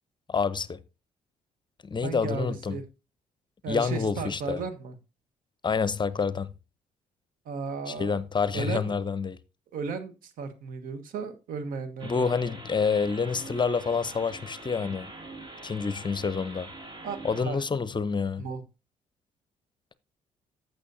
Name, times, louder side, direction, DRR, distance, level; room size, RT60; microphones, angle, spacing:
voice 1, 0.3-0.8 1.8-2.8 3.7-4.6 5.6-6.5 7.9-9.4 12.0-15.1 15.6-16.7 17.2-18.5, left 5 dB, 30° left, 0.7 m, -28 dB
voice 2, 2.0-2.8 3.6-5.0 7.4-8.2 8.5-8.9 9.7-12.3 17.0-17.6 18.4-18.6, right 5 dB, 65° right, 1.3 m, -35 dB
sound 1, 12.0-17.4, right 2 dB, 30° right, 2.1 m, -44 dB
15.0 x 6.2 x 2.7 m
hypercardioid pair, 50°, 15 cm